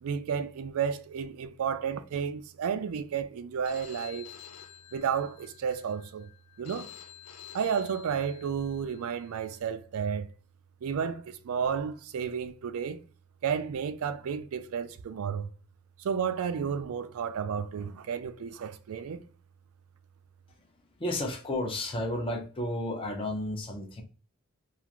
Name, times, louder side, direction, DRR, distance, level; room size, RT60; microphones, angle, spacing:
voice 1, 0.0-4.3 4.9-6.3 6.6-6.9 7.5-10.3 10.8-13.0 13.4-15.5 16.0-19.2, right 7 dB, 65° right, 0.3 m, -32 dB
Telephone, 3.6-9.6, left 10 dB, 80° left, 0.5 m, -50 dB
voice 2, 21.0-24.0, left 1 dB, 25° left, 0.5 m, -32 dB
2.5 x 2.4 x 2.9 m
head